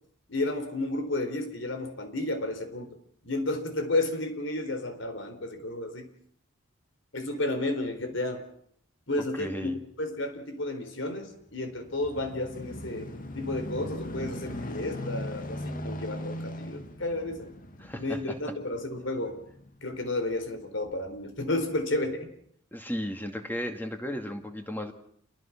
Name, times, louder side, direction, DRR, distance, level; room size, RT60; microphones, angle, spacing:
voice 1, 0.3-3.0 3.2-6.1 7.1-8.4 9.1-13.1 13.3-17.5 18.0-19.4 19.8-22.3, left 2 dB, 70° left, 7 dB, 4.1 m, -32 dB
voice 2, 9.4-9.8 17.8-18.4 22.7-24.9, equal, 10° left, 6 dB, 2.3 m, -35 dB
sound 1, 11.4-20.2 20.8-21.0, left 1 dB, 45° left, 2.1 m, -39 dB
28.5 x 22.5 x 6.0 m, 0.66 s
head